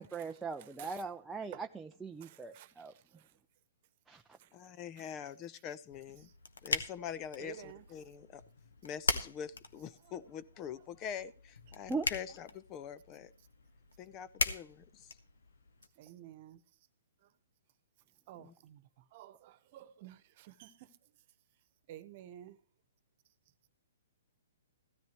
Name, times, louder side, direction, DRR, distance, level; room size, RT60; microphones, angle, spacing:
voice 1, 0.0-2.9 4.1-4.2 11.9-12.1, right 4 dB, 10° right, 0.6 m, -40 dB
voice 2, 0.6-1.0 1.5-1.7 2.2-3.3 4.4-4.5 7.4-7.9 10.0-10.1 11.8-11.9 16.0-16.6 18.3-20.9 21.9-22.6, right 11 dB, 45° right, 1.2 m, -52 dB
voice 3, 4.5-6.3 6.6-8.4 8.8-13.3 14.0-15.2 18.4-18.5, left 8 dB, 30° left, 0.8 m, -44 dB
sound 1, 5.9-15.9, left 4 dB, 80° left, 1.4 m, -40 dB
15.5 x 13.5 x 3.1 m
hypercardioid pair, 125°, 0 cm